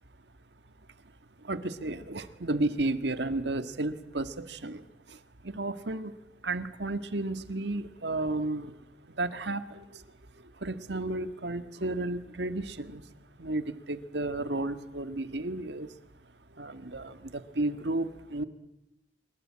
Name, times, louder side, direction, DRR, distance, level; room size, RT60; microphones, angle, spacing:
voice 1, 1.4-6.1 6.4-8.8 9.1-10.0 10.4-13.0 13.4-16.0 16.6-18.4, right 2 dB, 70° right, 10 dB, 1.7 m, -33 dB
27.0 x 22.5 x 8.6 m, 0.89 s
head